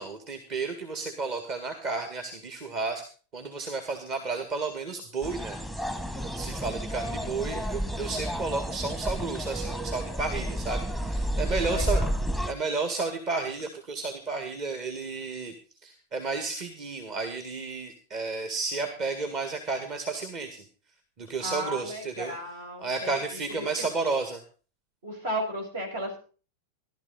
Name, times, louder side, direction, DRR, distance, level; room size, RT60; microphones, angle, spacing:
voice 1, 0.0-3.0 3.3-12.0 12.5-15.5 15.8-20.6 21.2-22.3 22.8-24.4, right 4 dB, 35° right, 5 dB, 2.0 m, -32 dB
sound 1, 5.2-12.5, equal, 5° right, 1.2 m, -31 dB
voice 2, 11.6-12.1 21.4-23.4 23.8-23.9 25.0-26.2, right 1 dB, 65° right, 1 dB, 6.1 m, -34 dB
16.0 x 12.0 x 4.1 m, 0.38 s
figure-of-eight pair, 90°, 0 cm